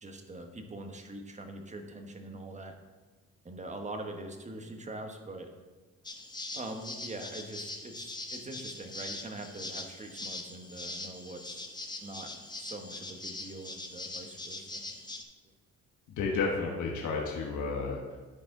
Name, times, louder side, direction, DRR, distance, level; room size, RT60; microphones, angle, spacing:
voice 1, 0.0-2.7 3.4-5.5 6.5-11.7 12.0-14.8 16.3-16.4, right 2 dB, 25° right, 4 dB, 1.2 m, -43 dB
sound 1, 6.0-15.2, left 2 dB, 15° left, 0.9 m, -42 dB
voice 2, 16.2-18.2, left 4 dB, 75° left, -2 dB, 1.3 m, -32 dB
12.5 x 4.8 x 3.8 m, 1.3 s
cardioid pair, 90°, 30 cm